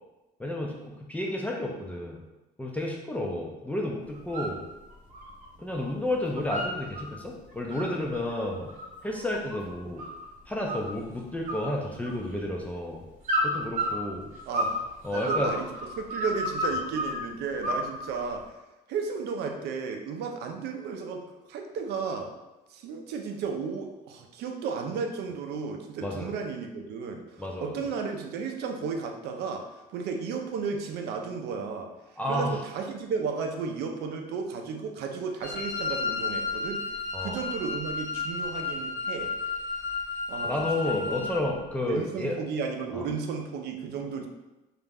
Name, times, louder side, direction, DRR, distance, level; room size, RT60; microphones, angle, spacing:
voice 1, 0.4-2.2 2.6-4.6 5.6-8.7 9.0-10.1 10.5-13.0 13.4-14.3 15.0-15.5 26.0-26.3 27.4-27.9 32.2-32.6 37.1-37.4 40.4-42.4 42.9-43.0, left 1 dB, 10° left, -2 dB, 0.3 m, -31 dB
sound 1, 4.1-4.6 4.9-5.9 6.1-7.1 7.5-10.3 10.7-11.1 11.5-12.4 13.2-14.8 15.1-17.2 17.6-18.4, equal, 50° right, 0.8 m, -31 dB
voice 2, 14.5-14.8 15.1-15.6 16.0-18.4 18.9-22.3 22.7-31.9 32.3-36.8 37.2-39.3 40.3-41.5 41.8-44.3, right 5 dB, 75° right, 4 dB, 0.4 m, -34 dB
Wind instrument woodwind instrument, 35.4-41.4, left 4 dB, 70° left, 0.7 m, -32 dB
2.4 x 2.1 x 3.3 m, 1.0 s
cardioid pair, 110°, 17 cm